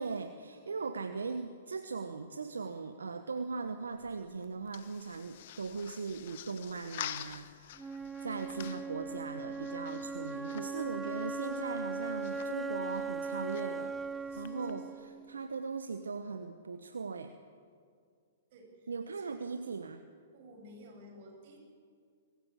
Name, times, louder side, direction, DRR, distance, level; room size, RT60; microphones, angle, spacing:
voice 1, 0.0-13.9 14.3-17.3 18.9-20.0, right 4 dB, 80° right, 8 dB, 1.1 m, -39 dB
sound 1, 3.8-14.7, left 12 dB, 55° left, 1.0 m, -49 dB
Wind instrument woodwind instrument, 7.8-15.8, right 4 dB, 10° right, 0.7 m, -39 dB
voice 2, 9.9-11.0 14.3-15.1 18.5-18.7 19.1-19.4 20.3-21.6, right 1 dB, 50° right, 1 dB, 7.6 m, -54 dB
24.0 x 15.5 x 8.5 m, 2.1 s
figure-of-eight pair, 115°, 0 cm